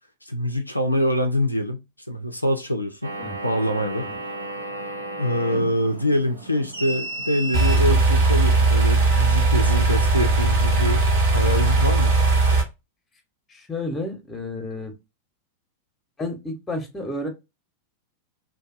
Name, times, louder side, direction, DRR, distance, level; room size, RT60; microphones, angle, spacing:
voice 1, 0.2-3.1 3.4-4.1 5.2-11.0 11.3-12.1, equal, 90° left, 0.3 m, -24 dB
sound 1, 3.0-9.4, right 1 dB, 80° right, 0.6 m, -34 dB
sound 2, 7.5-12.6, right 3 dB, 55° right, 1.1 m, -18 dB
voice 2, 13.5-14.9 16.2-17.3, left 2 dB, 15° left, 0.8 m, -31 dB
2.7 x 2.2 x 2.4 m
figure-of-eight pair, 90°, 0 cm